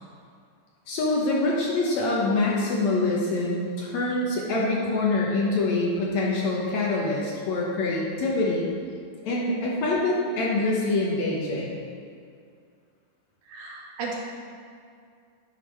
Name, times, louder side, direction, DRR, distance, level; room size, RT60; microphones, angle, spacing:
voice 1, 0.9-8.7 9.2-11.8, left 2 dB, 65° left, -4 dB, 2.0 m, -25 dB
voice 2, 13.5-14.1, right 4 dB, 70° right, -2 dB, 2.3 m, -35 dB
10.0 x 4.7 x 5.6 m, 2.3 s
omnidirectional pair, 3.9 m